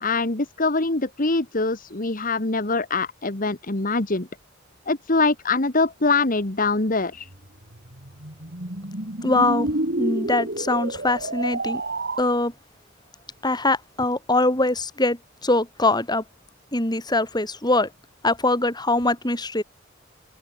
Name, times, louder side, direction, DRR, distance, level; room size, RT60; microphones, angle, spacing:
voice 1, 0.0-4.3 4.9-7.3, left 3 dB, 45° left, 1.7 m, -23 dB
sound 1, 7.3-12.2, right 2 dB, 55° right, 3.8 m, -29 dB
voice 2, 9.2-9.7 10.0-11.8 12.2-12.5 13.4-16.2 16.7-17.9 18.2-19.6, left 2 dB, 20° left, 7.3 m, -22 dB
open air
head